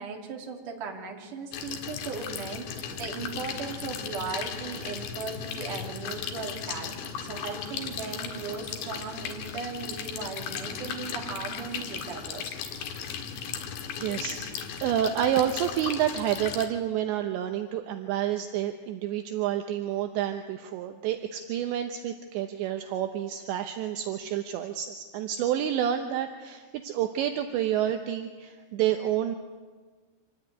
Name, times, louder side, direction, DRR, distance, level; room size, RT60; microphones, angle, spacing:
voice 1, 0.0-12.6, right 5 dB, 50° right, 2 dB, 3.7 m, -37 dB
sound 1, 1.5-16.7, left 7 dB, 75° left, 3.9 m, -36 dB
voice 2, 13.6-29.4, right 10 dB, 75° right, 6 dB, 3.1 m, -29 dB
26.0 x 18.0 x 9.5 m, 1.4 s
omnidirectional pair, 5.4 m